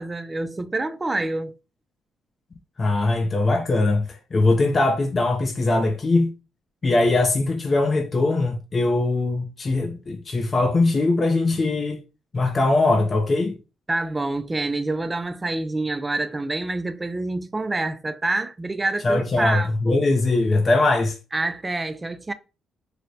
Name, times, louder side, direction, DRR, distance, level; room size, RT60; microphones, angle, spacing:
voice 1, 0.0-1.5 13.9-20.1 21.3-22.3, right 2 dB, 20° right, 0.3 m, -27 dB
voice 2, 2.8-6.3 6.8-12.0 12.3-13.6 19.0-21.2, left 2 dB, 35° left, 0.5 m, -21 dB
3.3 x 2.1 x 3.8 m
cardioid pair, 90°, 0 cm